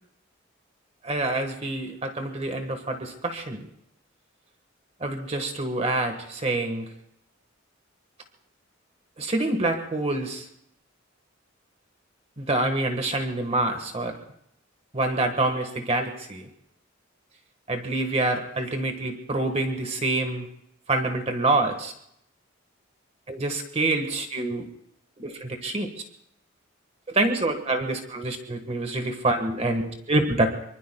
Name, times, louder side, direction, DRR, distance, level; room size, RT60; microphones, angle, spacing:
voice 1, 1.0-3.7 5.0-6.9 9.2-10.5 12.4-14.1 14.9-16.5 17.7-20.5 20.9-21.9 23.3-24.7 25.2-25.9 27.1-30.5, right 2 dB, 30° right, 5 dB, 1.5 m, -26 dB
24.5 x 24.5 x 2.3 m, 0.74 s
head